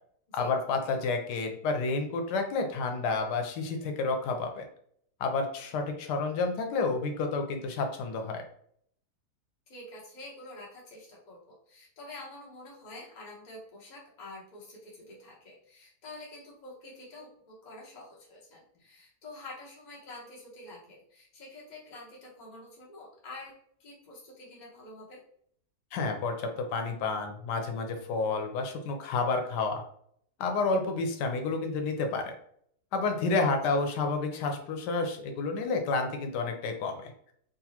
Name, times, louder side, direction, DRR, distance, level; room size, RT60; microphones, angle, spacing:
voice 1, 0.3-4.6 5.2-8.4 25.9-29.8 30.4-32.3 32.9-37.1, left 3 dB, 85° left, 5 dB, 1.2 m, -30 dB
voice 2, 9.7-23.5 23.8-25.2 33.4-33.8, left 2 dB, 35° left, -4 dB, 0.9 m, -47 dB
3.9 x 2.3 x 2.8 m, 0.65 s
omnidirectional pair, 1.7 m